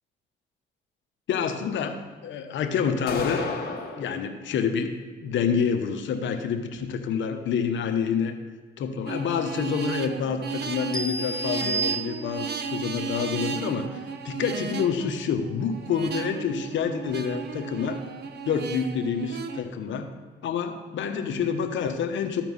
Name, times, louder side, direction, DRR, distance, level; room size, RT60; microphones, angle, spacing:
voice 1, 1.3-3.4 4.0-8.3 8.8-18.0 18.4-20.1 20.4-22.4, left 6 dB, 70° left, 7 dB, 0.9 m, -28 dB
sound 1, 3.1-4.1, left 4 dB, 55° left, 1.7 m, -31 dB
sound 2, 9.1-19.6, right 6 dB, 55° right, 0.7 m, -35 dB
sound 3, 10.9-12.7, right 3 dB, 5° left, 1.0 m, -30 dB
13.5 x 4.6 x 5.3 m, 1.4 s
cardioid pair, 90°, 20 cm